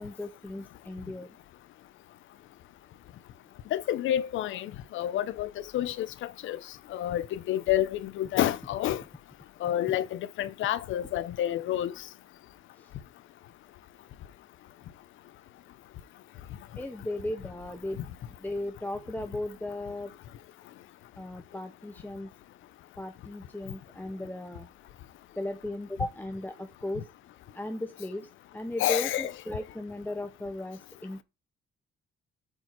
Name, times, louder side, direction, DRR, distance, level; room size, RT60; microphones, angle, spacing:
voice 1, 0.0-1.4 9.9-10.0 12.8-12.9 16.8-20.1 21.2-22.3 23.0-24.7 25.4-27.1 27.5-31.2, left 1 dB, 10° left, 0.8 m, -36 dB
voice 2, 3.7-6.6 6.9-9.0 9.6-11.9 28.8-29.3, left 12 dB, 80° left, 0.8 m, -29 dB
7.8 x 4.6 x 4.5 m
cardioid pair, 90°, 20 cm